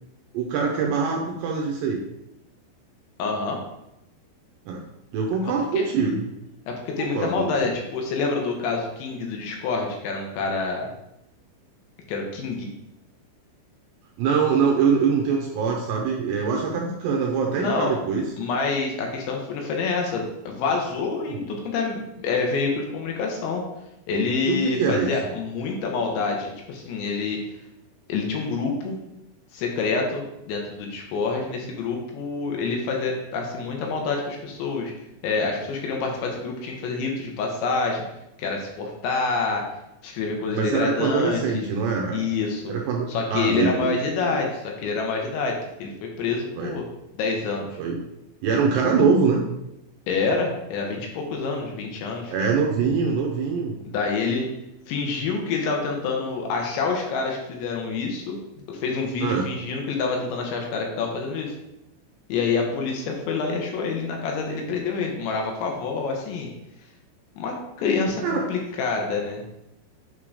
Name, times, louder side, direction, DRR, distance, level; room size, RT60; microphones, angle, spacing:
voice 1, 0.3-2.0 4.7-4.8 5.1-6.3 7.0-7.6 14.2-18.3 21.3-21.4 24.4-25.3 40.5-42.2 42.7-44.4 46.6-46.7 47.8-48.0 48.4-49.4 52.3-53.7 59.2-59.5 68.2-68.5, right 5 dB, 75° right, 0 dB, 2.6 m, -23 dB
voice 2, 3.2-3.6 5.4-5.9 6.7-10.9 12.1-12.7 17.6-17.9 18.4-23.6 24.1-27.4 28.1-29.0 29.5-34.9 35.2-38.0 38.4-39.6 40.0-41.4 42.1-42.7 43.1-46.9 47.1-47.8 50.1-52.3 53.9-54.5 54.9-58.4 58.7-61.5 62.3-66.5 67.4-69.4, left 4 dB, 75° left, 1 dB, 3.1 m, -27 dB
8.7 x 3.7 x 4.9 m, 0.87 s
omnidirectional pair, 5.7 m